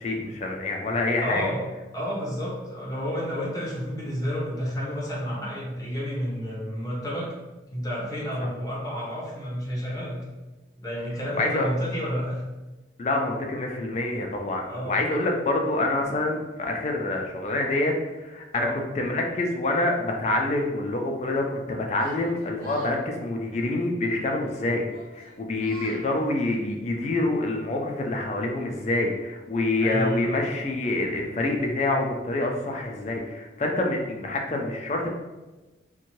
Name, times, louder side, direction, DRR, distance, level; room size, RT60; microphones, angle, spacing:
voice 1, 0.0-1.5 8.4-8.5 11.3-11.7 13.0-18.7 18.9-24.8 25.1-35.1, left 2 dB, 40° left, 1 dB, 0.4 m, -26 dB
voice 2, 1.2-1.6 1.9-7.3 7.7-10.2 10.8-12.4 14.7-15.0 18.5-18.7 29.8-30.4, equal, 20° left, -5 dB, 0.7 m, -30 dB
Yell, 21.9-23.0 24.0-24.4 24.8-26.0, equal, 55° right, 0.9 m, -47 dB
2.6 x 2.2 x 3.0 m, 1.1 s
head